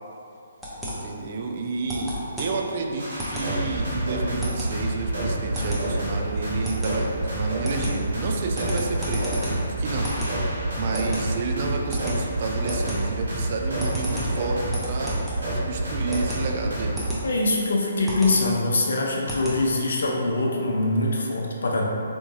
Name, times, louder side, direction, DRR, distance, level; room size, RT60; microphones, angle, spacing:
sound 1, 0.6-20.0, equal, 5° right, 0.6 m, -34 dB
voice 1, 0.8-15.2 15.5-17.0, right 3 dB, 45° right, 2 dB, 0.4 m, -30 dB
sound 2, 3.0-17.1, right 1 dB, 80° right, 1.2 m, -28 dB
voice 2, 17.2-21.8, left 2 dB, 75° left, -1 dB, 0.6 m, -23 dB
3.5 x 3.0 x 2.6 m, 2.5 s
hypercardioid pair, 145°, 0 cm